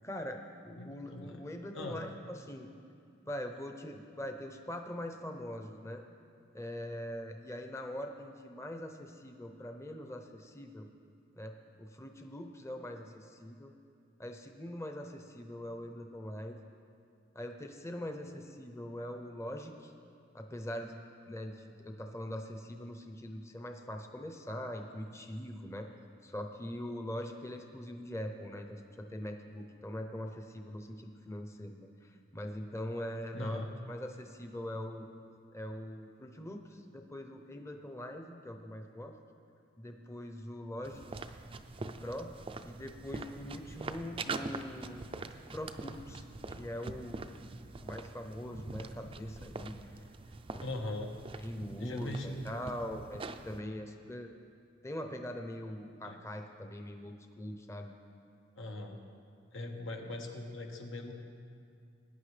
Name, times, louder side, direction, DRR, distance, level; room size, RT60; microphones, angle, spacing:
voice 1, 0.0-2.7 3.3-6.0 6.5-10.9 11.3-11.5 11.8-13.7 14.2-16.6 17.3-19.9 20.3-21.0 21.3-25.9 26.2-35.0 35.5-39.1 39.8-41.2 42.0-42.3 42.6-45.0 45.5-46.2 46.5-47.2 47.8-50.0 50.5-50.7 51.4-54.3 54.8-57.9, left 1 dB, 15° left, 4 dB, 0.7 m, -42 dB
voice 2, 0.8-1.4 1.7-2.0 33.3-33.7 50.6-51.1 51.8-52.6 56.0-56.2 58.6-59.0 59.5-61.1, left 1 dB, 85° left, 2 dB, 1.3 m, -40 dB
sound 1, 40.8-53.6, right 3 dB, 30° right, 0.4 m, -44 dB
20.0 x 9.8 x 3.3 m, 2.4 s
head